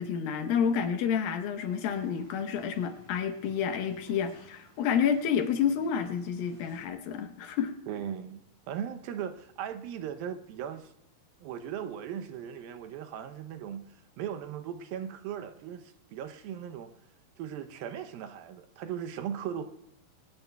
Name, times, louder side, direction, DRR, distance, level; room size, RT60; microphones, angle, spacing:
voice 1, 0.0-7.7, left 7 dB, 75° left, 2.8 m, -29 dB
sound 1, 1.5-6.9, right 3 dB, 40° right, 3.5 m, -56 dB
voice 2, 7.9-10.9 11.4-16.9 17.4-19.7, right 9 dB, 80° right, 2.6 m, -38 dB
22.5 x 19.0 x 2.3 m
omnidirectional pair, 4.3 m